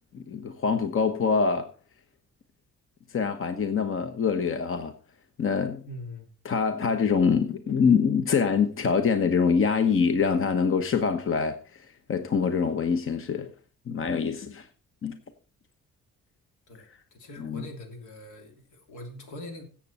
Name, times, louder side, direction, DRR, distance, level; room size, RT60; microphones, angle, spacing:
voice 1, 0.1-1.7 3.1-4.9 5.4-5.8 6.4-13.5 13.9-14.7 15.0-15.2 17.4-17.6, left 5 dB, 45° left, 1.1 m, -25 dB
voice 2, 5.8-6.3 16.7-19.6, left 1 dB, 80° left, 2.9 m, -42 dB
16.0 x 7.6 x 4.2 m
cardioid pair, 90°, 30 cm